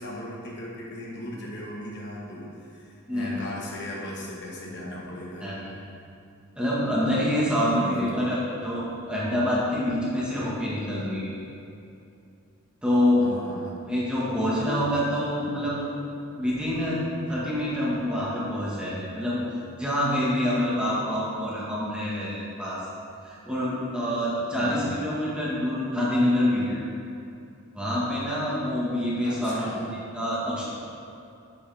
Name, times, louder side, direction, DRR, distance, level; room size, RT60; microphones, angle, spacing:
voice 1, 0.0-5.5 7.6-8.3 13.2-13.8 24.5-24.9 29.2-29.9, left 1 dB, 50° left, -4 dB, 1.4 m, -37 dB
voice 2, 3.0-3.4 5.4-5.7 6.5-8.4 8.6-11.3 12.8-13.3 13.9-15.8 16.3-17.0 17.3-19.4 19.8-22.8 23.2-26.8 27.7-30.6, left 1 dB, 5° right, -8 dB, 1.7 m, -26 dB
8.5 x 8.5 x 3.5 m, 2.7 s
head